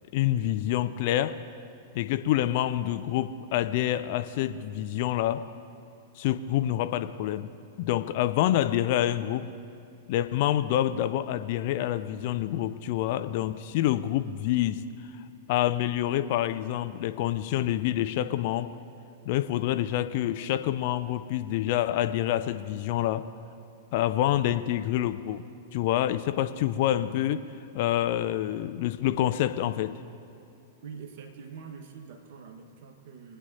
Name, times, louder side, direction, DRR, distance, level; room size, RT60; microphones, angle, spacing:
voice 1, 0.1-1.4 1.9-5.4 6.2-7.5 7.8-9.5 10.1-14.8 15.5-18.7 19.3-23.3 23.9-25.5 25.7-27.5 27.7-30.0, left 12 dB, 45° left, 11 dB, 0.4 m, -27 dB
voice 2, 30.8-33.4, right 6 dB, 45° right, 5 dB, 1.4 m, -44 dB
22.5 x 9.0 x 2.7 m, 2.7 s
figure-of-eight pair, 100°, 0 cm